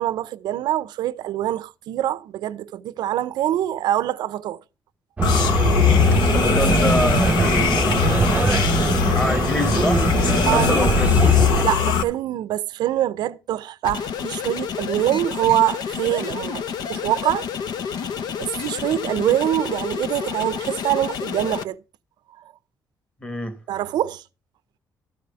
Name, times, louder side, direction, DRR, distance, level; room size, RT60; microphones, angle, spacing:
voice 1, 0.0-4.6 10.5-10.8 11.6-17.5 17.9-18.1 18.4-21.8 23.7-24.2, right 12 dB, 85° right, 0.6 m, -24 dB
sound 1, 5.2-12.0, left 8 dB, 90° left, 1.0 m, -20 dB
sound 2, 5.2-11.6, right 3 dB, 20° right, 0.6 m, -21 dB
voice 2, 6.3-8.4 9.1-11.2 23.2-23.6, left 1 dB, 15° left, 1.6 m, -27 dB
sound 3, 13.8-21.6, left 7 dB, 70° left, 0.7 m, -30 dB
13.0 x 4.9 x 6.9 m
cardioid pair, 145°, 7 cm